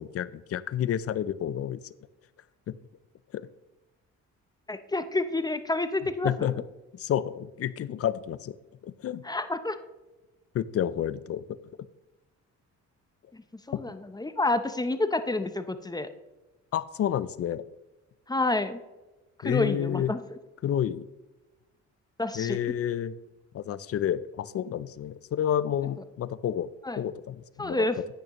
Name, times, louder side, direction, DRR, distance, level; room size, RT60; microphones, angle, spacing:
voice 1, 0.0-1.8 2.7-2.8 3.3-3.5 6.2-6.5 6.9-8.6 8.8-9.2 10.5-11.6 13.7-13.8 16.7-17.6 19.4-20.1 20.6-21.1 22.3-23.1 23.5-26.7 27.0-27.8, left 10 dB, 50° left, 17 dB, 0.5 m, -30 dB
voice 2, 4.7-6.6 9.2-9.8 13.3-13.4 13.7-16.1 18.3-18.8 19.4-20.2 22.2-22.6 26.8-27.0 27.6-28.0, left 2 dB, 15° left, 10 dB, 0.6 m, -29 dB
10.5 x 9.1 x 3.0 m, 1.1 s
cardioid pair, 90°, 30 cm